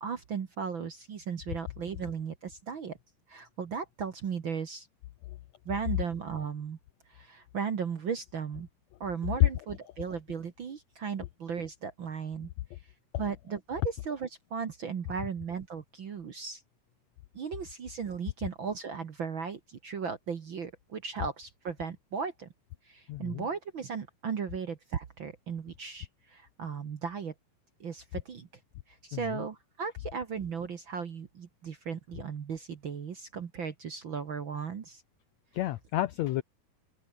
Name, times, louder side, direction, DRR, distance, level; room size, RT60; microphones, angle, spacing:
voice 1, 0.0-3.0 3.3-4.9 5.7-6.8 7.1-8.7 9.0-12.5 13.2-16.6 17.3-22.5 22.9-27.3 27.8-28.5 28.9-35.0, right 6 dB, 50° right, 1.6 m, -36 dB
voice 2, 23.1-23.5 29.1-29.4 35.5-36.4, left 15 dB, 80° left, 1.6 m, -32 dB
open air
omnidirectional pair, 4.0 m